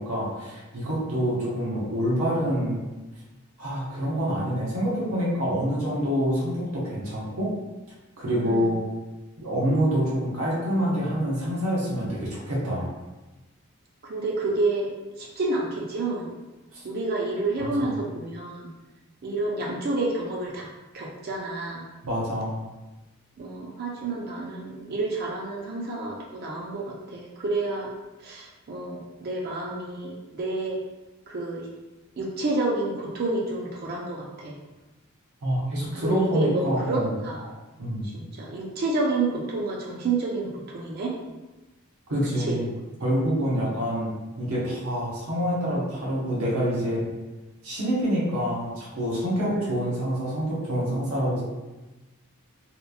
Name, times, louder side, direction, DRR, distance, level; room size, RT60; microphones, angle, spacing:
voice 1, 0.0-2.8 3.6-7.5 8.2-8.8 9.4-12.9 17.6-17.9 22.0-22.6 35.4-37.1 37.8-38.1 42.1-42.7 43.0-44.1 44.4-47.1 47.6-51.4, equal, 80° right, -6 dB, 0.7 m, -26 dB
voice 2, 14.0-14.9 15.2-16.3 16.8-18.7 19.2-20.7 20.9-21.9 23.4-27.9 28.2-30.8 31.3-31.7 32.2-34.5 35.9-37.5 38.0-41.1 42.4-42.6 49.5-49.7, right 2 dB, 45° right, -2 dB, 0.4 m, -29 dB
2.9 x 2.2 x 2.4 m, 1.1 s
head